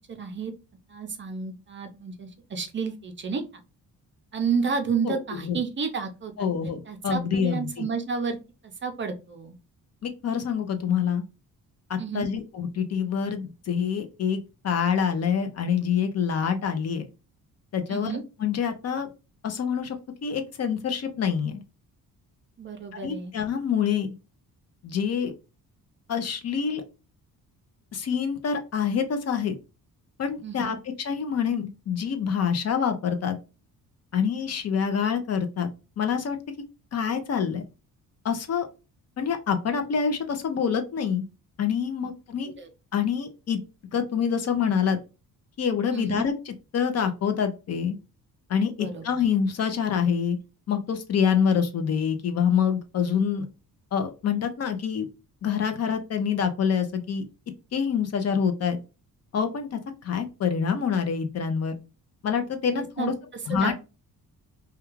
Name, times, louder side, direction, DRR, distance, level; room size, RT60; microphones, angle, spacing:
voice 1, 0.1-0.5 0.9-3.4 4.3-6.5 6.9-8.4 8.8-9.5 12.0-12.3 17.9-18.2 22.6-23.3 30.4-30.8 42.4-42.7 45.9-46.2 48.8-49.0 62.7-63.1 63.5-63.7, right 5 dB, 35° right, 6 dB, 0.5 m, -31 dB
voice 2, 6.4-7.8 10.0-11.2 11.9-14.4 14.6-17.1 17.7-18.1 18.4-19.1 19.4-20.0 20.2-21.6 22.9-24.1 24.8-25.3 26.1-26.8 27.9-29.5 30.2-33.4 34.1-35.7 36.0-36.4 36.9-37.6 38.2-38.7 39.2-41.2 41.6-42.5 42.9-43.6 43.9-45.0 45.6-48.0 48.5-50.4 50.7-53.5 53.9-55.1 55.4-57.2 57.7-58.8 59.3-61.8 62.2-63.1 63.5-63.7, left 7 dB, 45° left, 7 dB, 0.5 m, -26 dB
2.3 x 2.3 x 3.0 m, 0.30 s
cardioid pair, 115°, 36 cm